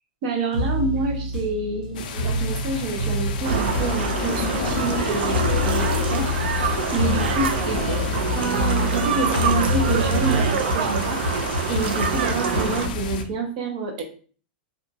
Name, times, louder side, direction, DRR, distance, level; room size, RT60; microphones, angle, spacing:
voice 1, 0.2-7.8 8.4-11.2 11.7-14.0, right 3 dB, 45° right, 4 dB, 0.6 m, -28 dB
sound 1, 0.5-13.3, left 2 dB, 5° right, 0.9 m, -28 dB
sound 2, 1.9-13.2, left 6 dB, 55° left, 0.4 m, -31 dB
sound 3, 3.4-12.9, right 6 dB, 85° right, 0.4 m, -26 dB
2.7 x 2.2 x 2.7 m, 0.41 s
supercardioid pair, 170°, 5 cm